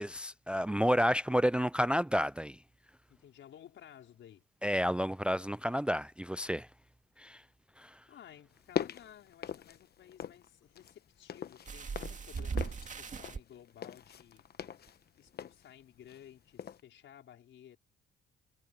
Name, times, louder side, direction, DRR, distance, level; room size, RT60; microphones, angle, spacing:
voice 1, 0.0-2.6 4.6-6.7 7.2-7.4 7.8-7.9, equal, 5° right, 0.5 m, -30 dB
voice 2, 3.1-4.4 8.1-14.4 15.2-17.8, left 10 dB, 70° left, 5.0 m, -55 dB
sound 1, 8.5-10.5 10.7-16.3 16.6-16.8, left 8 dB, 55° left, 1.1 m, -41 dB
sound 2, 11.7-13.4 14.4-14.5 14.9-15.0, right 5 dB, 40° right, 2.2 m, -38 dB
cardioid pair, 90°, 20 cm